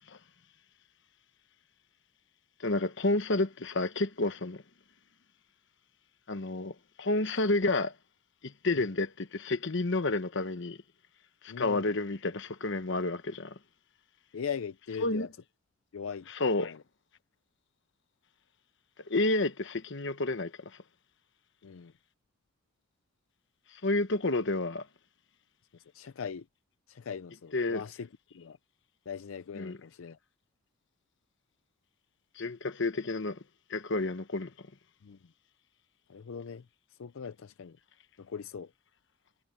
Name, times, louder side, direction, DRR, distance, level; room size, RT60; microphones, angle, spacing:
voice 1, 2.6-4.6 6.3-7.9 8.4-10.8 11.4-13.5 15.0-15.3 16.3-16.8 19.1-20.7 23.8-24.9 27.5-27.8 29.5-29.8 32.4-33.4 33.7-34.5, left 2 dB, 65° left, 1.2 m, -30 dB
voice 2, 11.5-11.9 13.1-13.2 14.3-15.3 15.9-16.3 16.6-16.8 21.6-21.9 25.7-26.5 26.9-28.1 28.3-28.6 29.1-30.2 35.0-35.3 36.1-37.8 38.2-38.7, left 6 dB, 85° left, 0.5 m, -40 dB
head